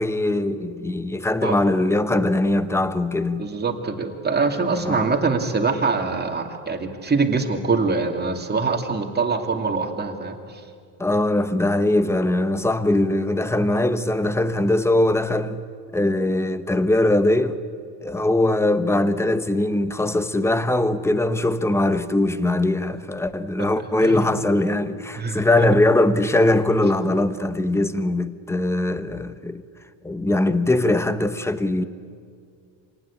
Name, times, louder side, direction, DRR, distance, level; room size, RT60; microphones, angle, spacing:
voice 1, 0.0-3.5 4.7-5.1 11.0-15.6 15.9-17.6 18.0-29.6 30.0-31.8, left 1 dB, 5° left, 1.0 m, -21 dB
voice 2, 3.4-10.6 22.9-23.0 24.0-24.2 25.1-25.7, right 4 dB, 20° right, 2.5 m, -24 dB
26.5 x 19.0 x 8.6 m
cardioid pair, 115°, 46 cm